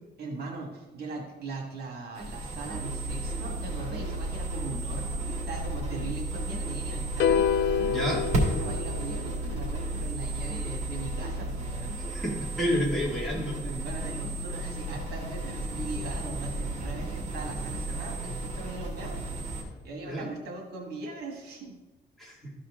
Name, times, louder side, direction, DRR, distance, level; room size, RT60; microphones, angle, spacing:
voice 1, 0.2-7.7 8.4-11.9 13.6-19.5 19.8-21.7, right 3 dB, 60° right, 1 dB, 1.7 m, -40 dB
sound 1, 2.1-19.6, right 1 dB, 40° right, 2.1 m, -36 dB
sound 2, 2.7-19.4, right 1 dB, 80° right, 1.0 m, -36 dB
sound 3, 7.2-9.5, left 7 dB, 75° left, 0.5 m, -27 dB
voice 2, 7.9-8.3 12.1-13.6 20.1-20.3 22.2-22.4, equal, ahead, -6 dB, 2.2 m, -29 dB
13.0 x 4.4 x 3.7 m, 1.1 s
cardioid pair, 155°, 18 cm